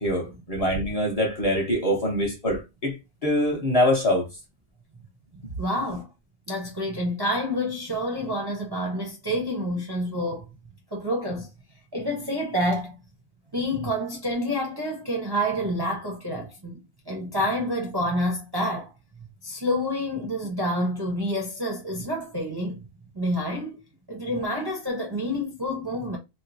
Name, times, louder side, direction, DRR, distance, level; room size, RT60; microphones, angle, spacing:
voice 1, 0.0-3.0 3.2-4.2, left 1 dB, 35° left, 0.8 m, -24 dB
voice 2, 5.6-6.1 6.5-10.5 10.9-11.5 11.9-13.0 13.5-18.9 19.4-22.8 23.1-23.8 24.1-26.2, equal, 30° right, 0.5 m, -28 dB
2.9 x 2.1 x 2.6 m
omnidirectional pair, 1.2 m